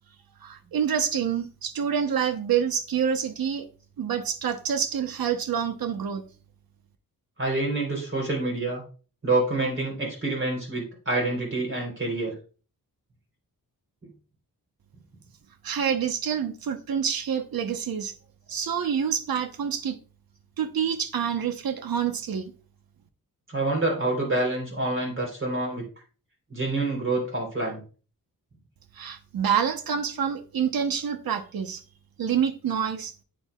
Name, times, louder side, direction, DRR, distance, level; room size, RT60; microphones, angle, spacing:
voice 1, 0.4-3.7 4.0-6.2 15.6-18.1 18.5-20.0 20.6-22.5 29.0-31.8 32.2-33.1, right 8 dB, 80° right, 1.0 m, -27 dB
voice 2, 7.4-8.8 9.2-12.3 23.5-25.8 26.5-27.8, right 2 dB, 35° right, 3.7 m, -27 dB
10.0 x 8.8 x 2.4 m
wide cardioid pair, 150°, 35 cm